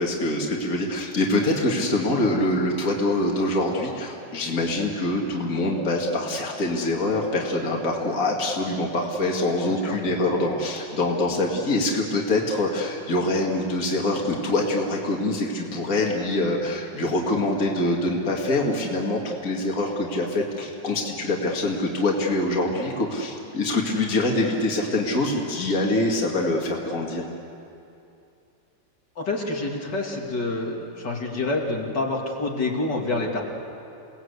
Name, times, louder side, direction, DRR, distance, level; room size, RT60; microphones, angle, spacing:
voice 1, 0.0-27.2, left 2 dB, 45° left, -1 dB, 2.7 m, -24 dB
voice 2, 29.2-33.4, left 2 dB, 65° left, -1 dB, 3.1 m, -27 dB
29.0 x 19.0 x 8.2 m, 2.6 s
omnidirectional pair, 2.0 m